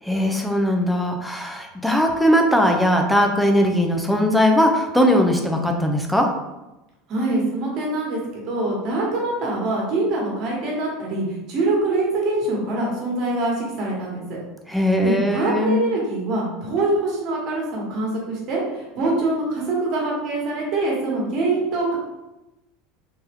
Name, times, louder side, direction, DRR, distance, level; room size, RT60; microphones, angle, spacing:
voice 1, 0.0-6.3 14.7-15.8, equal, ahead, 2 dB, 0.5 m, -19 dB
voice 2, 7.1-14.4 15.0-22.0, right 2 dB, 45° right, -3 dB, 1.5 m, -24 dB
3.5 x 2.8 x 3.5 m, 1.0 s
supercardioid pair, 130°, 0 cm